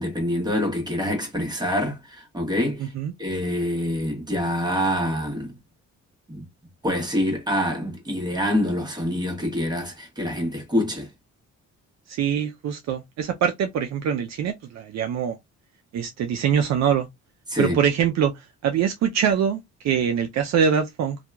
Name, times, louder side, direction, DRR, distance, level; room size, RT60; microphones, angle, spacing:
voice 1, 0.0-2.9 3.2-5.5 6.3-6.5 6.8-11.1 17.5-17.7, left 1 dB, 15° right, 1.3 m, -26 dB
voice 2, 2.8-3.1 12.1-15.4 15.9-17.1 17.6-21.2, right 8 dB, 60° right, 0.5 m, -24 dB
2.8 x 2.3 x 2.2 m
cardioid pair, 90°, 30 cm